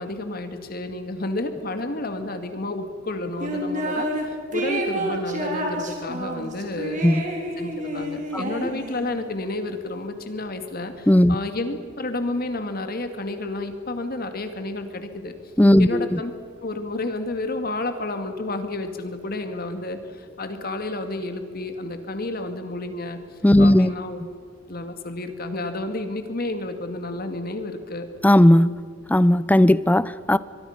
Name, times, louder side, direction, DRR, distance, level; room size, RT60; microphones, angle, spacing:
voice 1, 0.0-7.0 7.6-15.3 15.8-16.3 16.6-23.2 23.6-24.2 24.7-28.1, left 2 dB, 50° left, 7 dB, 2.1 m, -31 dB
sound 1, 3.4-4.2 4.5-9.2, right 1 dB, 40° right, 3.9 m, -29 dB
voice 2, 15.6-16.2 23.4-23.9 28.2-28.8 29.1-30.4, left 1 dB, 10° left, 17 dB, 0.5 m, -16 dB
24.5 x 22.5 x 5.8 m, 2.2 s
head